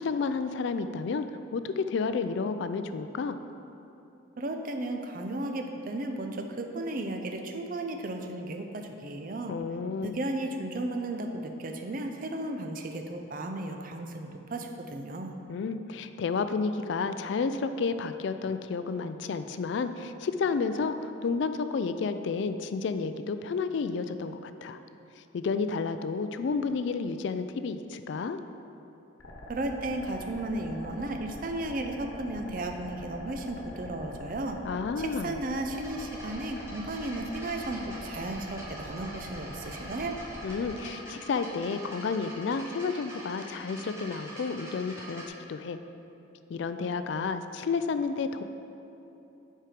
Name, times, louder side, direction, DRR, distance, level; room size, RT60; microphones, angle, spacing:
voice 1, 0.0-3.4 9.5-10.2 15.5-24.8 25.2-28.4 34.6-35.4 40.4-45.8 46.5-48.4, left 4 dB, 60° left, 10 dB, 0.3 m, -31 dB
voice 2, 4.4-9.6 10.0-15.3 29.5-34.6 35.0-40.2, right 2 dB, 45° right, 4 dB, 0.5 m, -34 dB
sound 1, 29.2-40.8, left 1 dB, 85° left, 1.1 m, -44 dB
sound 2, 35.7-45.3, right 1 dB, 15° right, 1.0 m, -45 dB
7.6 x 4.6 x 5.0 m, 2.9 s
head